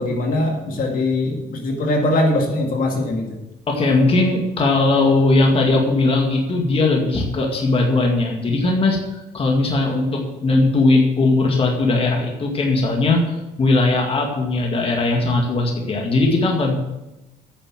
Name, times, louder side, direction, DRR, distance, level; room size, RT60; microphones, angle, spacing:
voice 1, 0.0-3.4, left 2 dB, 55° left, 1 dB, 2.2 m, -21 dB
voice 2, 3.7-9.0 9.3-16.8, left 2 dB, 35° left, 1 dB, 2.1 m, -18 dB
9.8 x 6.7 x 7.6 m, 0.99 s
cardioid pair, 110°, 17 cm